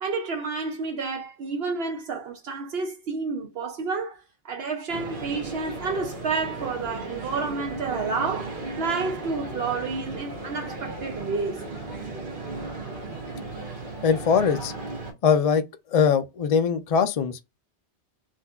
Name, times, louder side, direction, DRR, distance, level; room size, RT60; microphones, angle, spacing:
voice 1, 0.0-11.6, right 4 dB, 70° right, 0.9 m, -30 dB
sound 1, 4.9-15.1, right 2 dB, 55° right, 1.2 m, -36 dB
voice 2, 14.0-14.7 15.2-15.6 15.9-17.4, left 6 dB, 60° left, 0.3 m, -21 dB
3.7 x 2.7 x 2.2 m
omnidirectional pair, 1.1 m